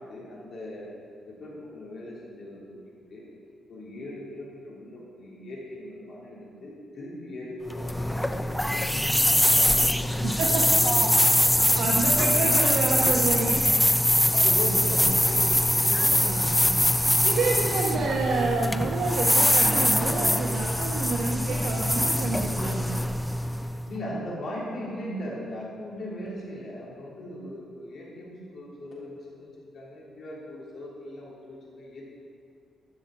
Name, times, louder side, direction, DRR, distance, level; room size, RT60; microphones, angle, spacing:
voice 1, 0.1-0.9 1.2-2.8 3.1-3.2 3.7-8.9 9.2-11.4 14.3-15.5 23.9-32.0, left 1 dB, 50° left, -5 dB, 3.4 m, -39 dB
sound 1, 7.7-23.9, left 1 dB, 5° left, 0.4 m, -23 dB
voice 2, 10.2-11.0 11.6-13.8 16.2-16.9 17.2-23.0, right 3 dB, 65° right, -1 dB, 1.1 m, -29 dB
12.5 x 6.9 x 7.2 m, 2.4 s
cardioid pair, 175°, 0 cm